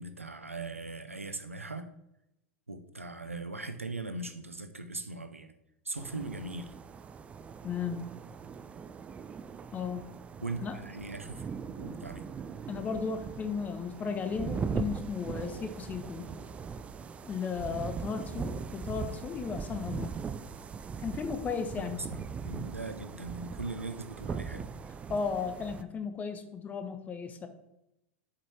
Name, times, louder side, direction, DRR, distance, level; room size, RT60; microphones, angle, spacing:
voice 1, 0.0-1.9 2.7-5.5 5.8-6.7 10.4-11.5 11.7-12.3 18.1-18.3 21.8-24.7, right 3 dB, 85° right, 9 dB, 0.6 m, -40 dB
sound 1, 6.0-25.8, right 6 dB, 20° right, 0.4 m, -40 dB
voice 2, 7.6-8.1 9.7-10.1 10.6-10.8 12.7-16.3 17.3-20.1 21.0-22.0 25.1-27.5, left 5 dB, 20° left, 8 dB, 0.9 m, -35 dB
6.8 x 5.2 x 4.5 m, 0.86 s
figure-of-eight pair, 90°, 7 cm